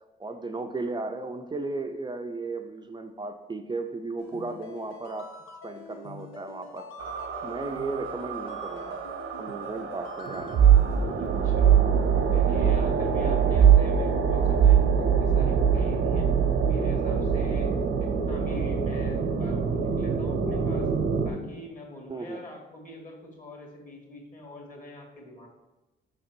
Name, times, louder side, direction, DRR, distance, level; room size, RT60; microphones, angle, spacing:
voice 1, 0.2-5.3 5.6-9.0 9.4-10.6 13.3-13.5 17.1-17.4 22.1-22.4, right 3 dB, 20° right, 5 dB, 0.5 m, -35 dB
sound 1, 4.2-11.0, left 5 dB, 85° left, 0.9 m, -45 dB
sound 2, 7.0-21.3, right 7 dB, 80° right, 0.9 m, -23 dB
voice 2, 11.2-11.8 12.3-16.3 16.7-17.7 18.0-20.9 21.2-25.5, left 1 dB, 40° left, 0 dB, 2.2 m, -43 dB
6.0 x 3.8 x 6.1 m, 1.1 s
cardioid pair, 90°, 20 cm